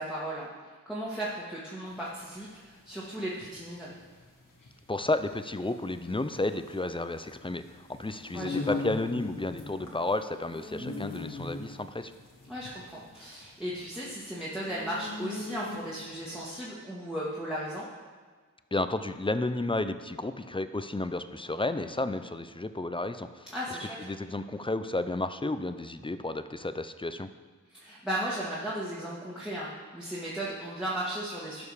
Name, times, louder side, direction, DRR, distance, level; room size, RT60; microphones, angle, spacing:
voice 1, 0.0-3.9 8.3-8.8 12.5-17.8 23.5-24.0 27.7-31.6, right 1 dB, ahead, -7 dB, 1.9 m, -36 dB
sound 1, 1.9-16.1, left 3 dB, 85° left, 1.8 m, -40 dB
voice 2, 4.9-12.1 18.7-23.5 24.0-27.3, left 2 dB, 15° left, 11 dB, 0.5 m, -32 dB
12.5 x 5.3 x 4.9 m, 1.5 s
wide cardioid pair, 50°, 32 cm